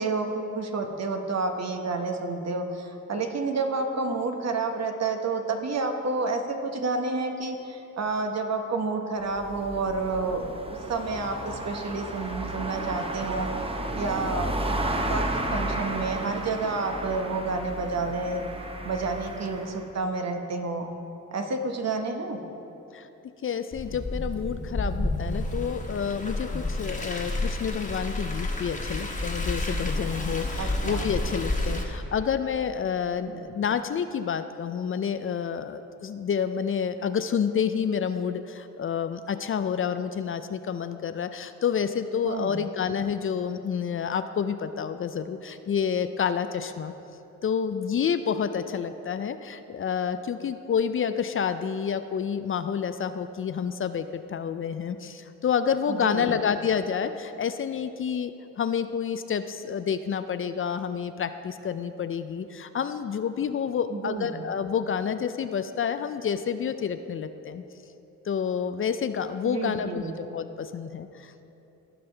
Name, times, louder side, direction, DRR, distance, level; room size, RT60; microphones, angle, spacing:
voice 1, 0.0-13.5 14.0-14.5 15.1-18.4 18.8-20.9 21.3-22.4 30.6-31.1 33.2-33.4 42.2-42.6 55.9-56.3 63.9-64.4 69.4-70.1, right 3 dB, 55° right, 5 dB, 1.0 m, -30 dB
sound 1, 9.2-19.8, right 1 dB, 20° right, 0.8 m, -33 dB
voice 2, 23.4-46.9 47.4-67.6 68.2-71.3, left 7 dB, 45° left, 11 dB, 0.4 m, -29 dB
Car, 23.7-31.8, left 2 dB, 25° left, 1.4 m, -30 dB
15.5 x 5.4 x 3.3 m, 2.9 s
cardioid pair, 65°, 31 cm